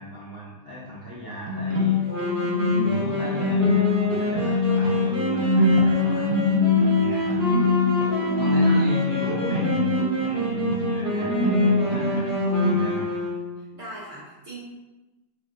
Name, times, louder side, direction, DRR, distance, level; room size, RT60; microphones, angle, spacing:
voice 1, 0.0-2.0 2.6-6.4 6.9-7.4 8.3-9.9 10.2-13.2, equal, 65° left, -9 dB, 0.4 m, -37 dB
sound 1, 1.5-12.9, left 3 dB, 80° right, 1.2 m, -23 dB
Wind instrument woodwind instrument, 2.0-13.8, right 1 dB, 35° right, 0.5 m, -28 dB
voice 2, 8.1-8.5 13.6-14.6, right 2 dB, 60° right, -6 dB, 0.8 m, -41 dB
2.9 x 2.6 x 3.6 m, 1.1 s
omnidirectional pair, 2.0 m